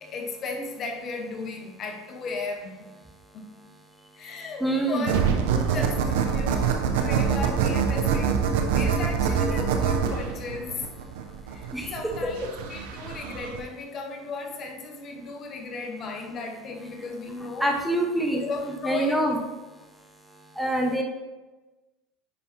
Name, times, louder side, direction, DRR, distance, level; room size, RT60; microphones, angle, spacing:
voice 1, 0.0-2.9 3.3-3.6 4.2-5.2 5.7-8.5 8.7-10.9 11.4-17.7 18.3-19.4, left 3 dB, 45° left, 3 dB, 1.1 m, -35 dB
voice 2, 4.6-5.2 11.7-11.9 17.6-19.4 20.3-21.0, right 1 dB, ahead, 1 dB, 1.4 m, -26 dB
sound 1, 5.1-13.6, right 6 dB, 75° right, 0.8 m, -25 dB
9.4 x 5.5 x 2.9 m, 1.1 s
hypercardioid pair, 90°, 0 cm